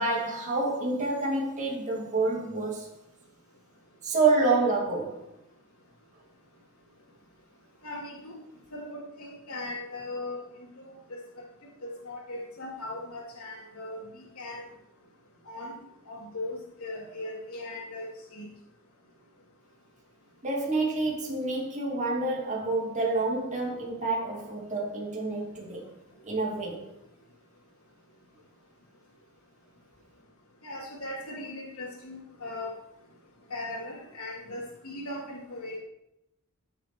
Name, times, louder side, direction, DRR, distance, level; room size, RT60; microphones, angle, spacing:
voice 1, 0.0-2.9 4.0-5.3 20.4-25.9 26.2-26.9, right 3 dB, 35° right, 2.6 m, -28 dB
voice 2, 7.8-8.3 8.7-10.9 11.8-14.6 15.5-15.7 16.1-18.5 30.6-32.7 33.5-35.8, left 2 dB, 90° left, 3.0 m, -38 dB
14.5 x 7.2 x 4.6 m
head